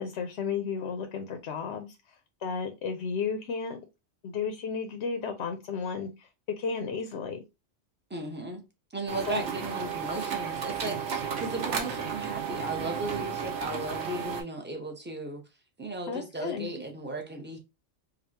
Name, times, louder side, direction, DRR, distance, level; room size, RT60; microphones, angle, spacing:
voice 1, 0.0-2.2 2.4-3.8 4.2-6.3 6.6-7.4 9.3-9.4 16.1-16.7, left 5 dB, 75° left, 0.9 m, -33 dB
voice 2, 8.1-8.6 8.9-15.4 15.8-17.6, right 2 dB, 10° right, 0.7 m, -36 dB
sound 1, 9.1-14.4, right 7 dB, 65° right, 1.1 m, -33 dB
5.1 x 2.3 x 2.7 m
omnidirectional pair, 1.2 m